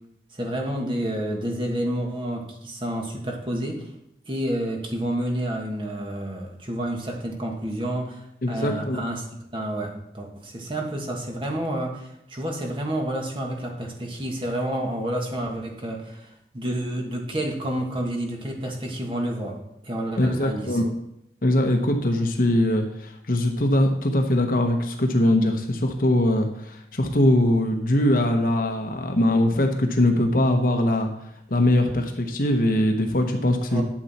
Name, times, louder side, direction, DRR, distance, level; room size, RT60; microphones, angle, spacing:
voice 1, 0.3-3.9 4.2-9.2 9.5-16.3 16.5-19.6 19.8-20.8 33.7-33.8, right 1 dB, 30° right, 1 dB, 1.7 m, -29 dB
voice 2, 8.4-9.0 20.2-20.9 21.4-31.1 31.5-33.8, left 1 dB, 50° left, 4 dB, 1.0 m, -21 dB
11.5 x 7.0 x 4.3 m, 0.79 s
head